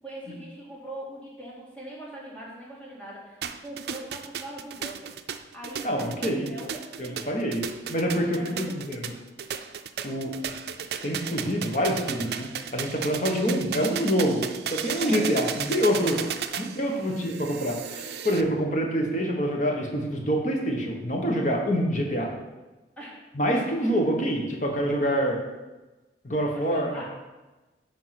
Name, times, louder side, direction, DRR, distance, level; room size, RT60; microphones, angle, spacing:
voice 1, 0.0-5.1 5.5-7.4 8.2-9.0 9.5-9.7 11.3-11.6 15.0-15.3 16.6-17.1 23.0-23.3 26.5-27.0, right 1 dB, 5° left, -6 dB, 2.1 m, -42 dB
sound 1, 3.4-18.4, right 8 dB, 65° right, 0.4 m, -35 dB
voice 2, 5.8-6.5 7.0-7.6 7.9-9.1 10.0-10.3 11.0-14.4 14.7-16.3 16.6-22.3 23.3-25.4 26.2-27.0, equal, 45° left, 1 dB, 1.3 m, -26 dB
9.3 x 3.7 x 5.9 m, 1.1 s
head